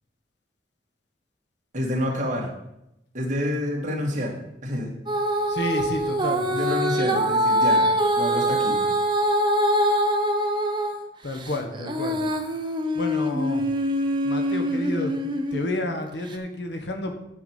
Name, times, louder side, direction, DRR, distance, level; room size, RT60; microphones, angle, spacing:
voice 1, 1.7-2.5 3.1-4.4 4.6-4.9 6.5-7.9 8.2-8.8, equal, 45° right, -1 dB, 2.3 m, -28 dB
Female singing, 5.1-11.0 11.4-15.7 16.3-16.4, equal, 25° right, 1.0 m, -24 dB
voice 2, 5.5-6.5 11.2-12.2 12.9-13.6 14.2-15.1 15.5-17.1, left 1 dB, 70° left, 4 dB, 1.5 m, -30 dB
10.0 x 4.8 x 7.4 m, 0.84 s
head